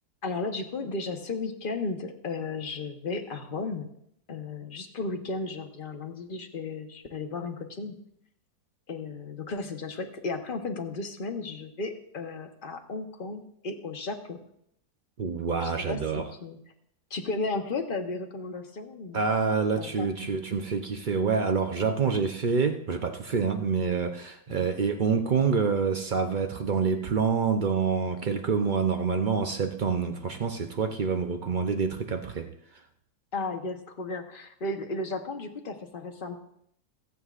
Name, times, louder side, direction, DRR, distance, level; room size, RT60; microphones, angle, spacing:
voice 1, 0.2-3.9 4.3-7.9 8.9-14.4 15.6-16.6 17.1-19.3 19.8-20.3 24.5-24.6 33.3-36.4, left 3 dB, 35° left, 4 dB, 1.0 m, -34 dB
voice 2, 15.2-16.3 19.1-32.5, right 5 dB, 80° right, 5 dB, 0.4 m, -27 dB
24.0 x 8.3 x 2.5 m, 0.72 s
omnidirectional pair, 1.8 m